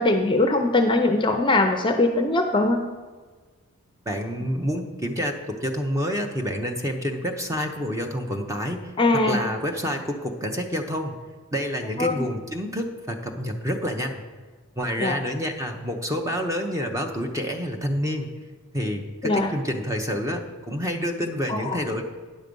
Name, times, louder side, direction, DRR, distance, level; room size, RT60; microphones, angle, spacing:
voice 1, 0.0-2.8 9.0-9.4 12.0-12.3 15.0-15.2 19.2-19.5 21.5-21.6, left 2 dB, 20° left, 5 dB, 0.5 m, -21 dB
voice 2, 4.1-11.2 11.5-14.2 14.8-18.3 18.7-22.0, equal, 15° right, 3 dB, 0.7 m, -28 dB
10.0 x 6.5 x 5.2 m, 1.4 s
head